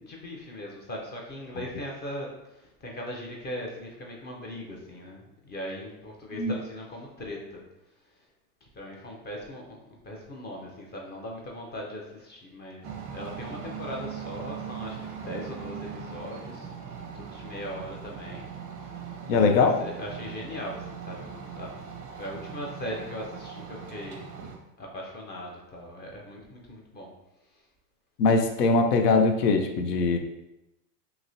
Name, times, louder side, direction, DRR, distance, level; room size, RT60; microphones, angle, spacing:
voice 1, 0.0-7.6 8.6-9.8 10.0-12.8 13.1-16.7 17.1-18.5 19.3-21.7 22.1-24.3 24.8-27.1, left 1 dB, 20° left, -1 dB, 0.5 m, -39 dB
sound 1, 12.8-24.6, right 7 dB, 30° right, 0.5 m, -40 dB
voice 2, 19.3-19.7 28.2-30.2, left 4 dB, 75° left, 5 dB, 0.6 m, -21 dB
2.9 x 2.8 x 2.6 m, 0.92 s
hypercardioid pair, 105°, 48 cm